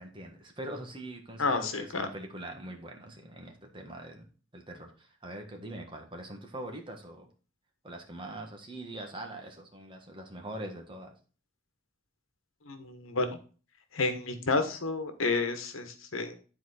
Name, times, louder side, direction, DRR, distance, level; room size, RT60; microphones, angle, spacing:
voice 1, 0.0-4.3 4.5-7.3 7.8-11.1, right 1 dB, 25° right, 3 dB, 1.5 m, -43 dB
voice 2, 1.4-2.1 12.7-13.3 13.9-16.4, left 3 dB, 80° left, 8 dB, 1.3 m, -30 dB
10.5 x 4.5 x 4.1 m, 0.37 s
head